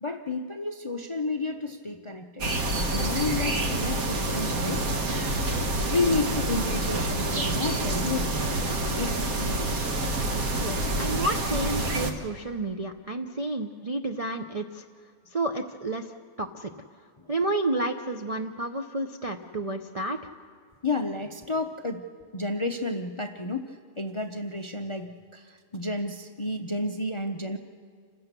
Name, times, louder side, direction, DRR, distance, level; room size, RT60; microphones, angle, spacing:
voice 1, 0.0-2.5 2.9-4.8 5.9-8.3 9.0-9.7 20.8-22.0 22.3-27.6, left 2 dB, 35° left, 6 dB, 0.5 m, -31 dB
sound 1, 2.4-12.1, right 2 dB, 70° right, 1.9 m, -27 dB
voice 2, 10.6-14.8 15.3-16.1 16.4-16.7 17.3-20.2, right 2 dB, 40° right, 3 dB, 0.5 m, -30 dB
28.0 x 16.0 x 6.8 m, 2.2 s
omnidirectional pair, 1.6 m